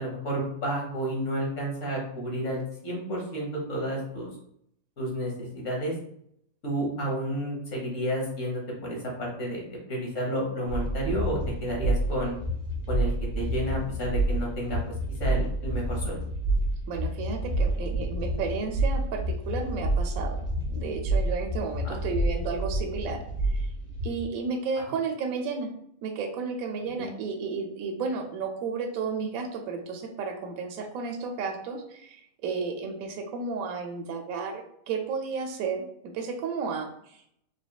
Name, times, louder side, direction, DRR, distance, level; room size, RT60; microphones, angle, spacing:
voice 1, 0.0-4.3 5.0-5.9 6.6-12.4 12.9-14.8 15.2-16.2 21.8-21.9 27.0-27.1, equal, 60° left, -1 dB, 1.5 m, -31 dB
sound 1, 10.7-24.2, right 1 dB, 35° right, 1.0 m, -29 dB
voice 2, 16.9-20.4 20.7-23.7 24.0-25.7 26.0-37.2, right 5 dB, 75° right, 4 dB, 1.0 m, -33 dB
4.9 x 3.2 x 2.3 m, 0.71 s
omnidirectional pair, 1.5 m